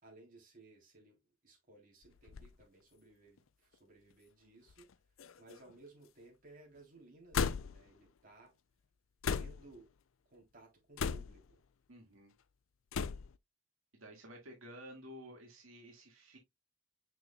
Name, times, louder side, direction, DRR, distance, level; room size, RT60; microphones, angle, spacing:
voice 1, 0.0-4.9 5.4-8.5 9.3-9.9 10.3-11.6, right 2 dB, 45° right, 3.4 m, -59 dB
sound 1, 2.0-2.5 3.4-3.5 4.7-4.9 5.2-5.8 7.3-7.9 9.2-9.8 11.0-11.5 12.9-13.4, left 6 dB, 80° left, 0.5 m, -36 dB
voice 2, 11.9-12.3 13.9-16.4, equal, 85° right, 2.1 m, -52 dB
6.7 x 6.1 x 2.3 m
head